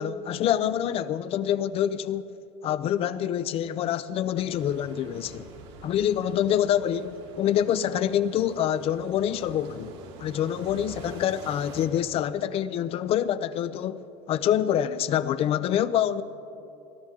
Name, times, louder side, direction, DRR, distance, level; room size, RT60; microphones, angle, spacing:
voice 1, 0.0-2.3 2.6-5.5 5.8-9.9 10.2-16.2, left 10 dB, 40° left, 0.5 m, -26 dB
sound 1, 4.5-11.9, right 3 dB, 90° right, 2.5 m, -46 dB
21.5 x 13.5 x 3.6 m
cardioid pair, 140°, 14 cm